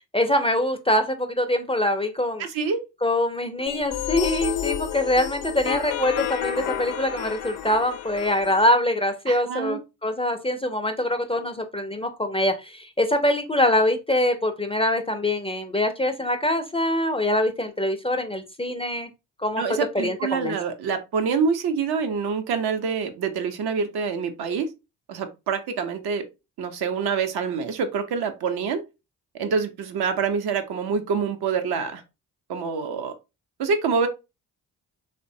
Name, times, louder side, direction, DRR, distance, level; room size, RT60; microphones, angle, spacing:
voice 1, 0.1-2.5 3.0-19.1 19.4-19.6 20.0-20.6, left 1 dB, 15° left, 7 dB, 0.5 m, -24 dB
voice 2, 2.4-2.8 9.3-9.8 19.6-24.7 25.1-26.2 26.6-28.8 29.4-32.0 32.5-33.2 33.6-34.1, right 5 dB, 65° right, 7 dB, 0.7 m, -26 dB
sound 1, 3.7-8.7, left 11 dB, 70° left, 0.5 m, -30 dB
3.1 x 2.1 x 2.6 m, 0.26 s
hypercardioid pair, 45°, 42 cm